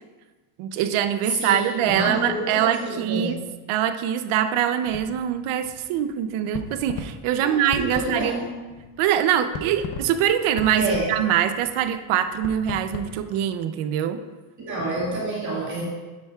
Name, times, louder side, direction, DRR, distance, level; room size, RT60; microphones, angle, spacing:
voice 1, 0.6-3.4 3.7-8.3 9.0-14.2, right 10 dB, 80° right, 10 dB, 0.7 m, -23 dB
voice 2, 1.2-3.4 7.4-8.5 10.7-11.2 14.6-15.8, right 2 dB, 35° right, -6 dB, 2.2 m, -28 dB
sound 1, 4.8-13.3, left 4 dB, 45° left, 0.8 m, -39 dB
10.0 x 8.8 x 2.4 m, 1.3 s
cardioid pair, 145°, 49 cm